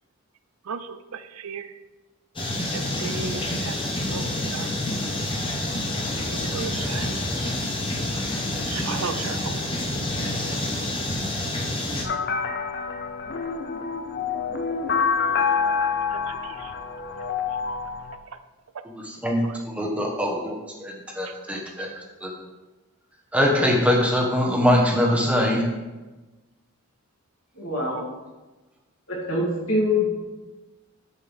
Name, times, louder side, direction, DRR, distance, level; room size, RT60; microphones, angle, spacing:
voice 1, 0.7-1.7 2.7-4.7 6.3-7.5 8.7-9.6 16.3-16.7 21.3-21.4, right 6 dB, 80° right, 11 dB, 0.5 m, -36 dB
sound 1, 2.4-12.0, left 1 dB, 25° left, 1.0 m, -28 dB
sound 2, 12.0-18.2, left 5 dB, 45° left, 0.5 m, -27 dB
voice 2, 18.9-20.5 20.8-21.9 22.2-22.3 23.3-25.6, equal, 5° right, -1 dB, 1.1 m, -22 dB
voice 3, 27.6-28.0 29.1-30.1, left 2 dB, 70° left, -4 dB, 2.7 m, -24 dB
11.5 x 5.5 x 3.5 m, 1.2 s
head